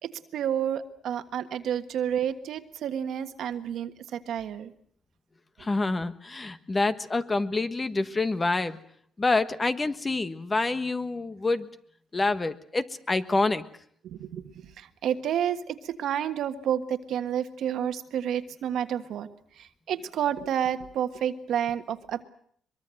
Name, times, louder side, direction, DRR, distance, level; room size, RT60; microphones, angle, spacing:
voice 1, 0.0-4.7 5.6-5.7 14.0-19.3 19.6-22.2, right 9 dB, 75° right, 9 dB, 1.5 m, -30 dB
voice 2, 5.6-8.8 9.2-11.7 12.1-13.6, left 3 dB, 25° left, 11 dB, 1.4 m, -27 dB
23.5 x 22.0 x 7.8 m, 0.63 s
cardioid pair, 90°, 0 cm